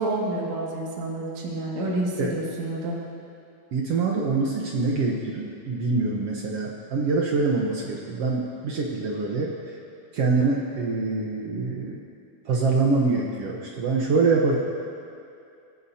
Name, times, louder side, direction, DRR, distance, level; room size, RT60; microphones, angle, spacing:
voice 1, 0.0-3.0, right 2 dB, 50° right, -4 dB, 3.1 m, -28 dB
voice 2, 3.7-9.5 10.1-12.0 12.4-14.6, right 4 dB, 85° right, -2 dB, 1.3 m, -24 dB
24.5 x 15.0 x 2.8 m, 2.5 s
omnidirectional pair, 4.4 m